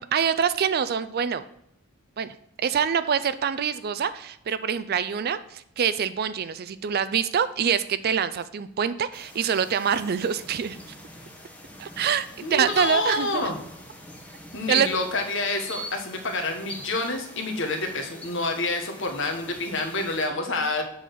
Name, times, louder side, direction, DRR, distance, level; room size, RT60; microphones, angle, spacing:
voice 1, 0.0-1.4 2.2-10.8 11.8-13.5 14.7-14.9, right 7 dB, 45° right, 14 dB, 0.4 m, -25 dB
sound 1, 9.1-20.3, equal, 5° left, 1.0 m, -44 dB
voice 2, 12.4-13.6 14.5-20.8, left 2 dB, 60° left, 4 dB, 1.4 m, -28 dB
7.5 x 4.0 x 6.7 m, 0.77 s
head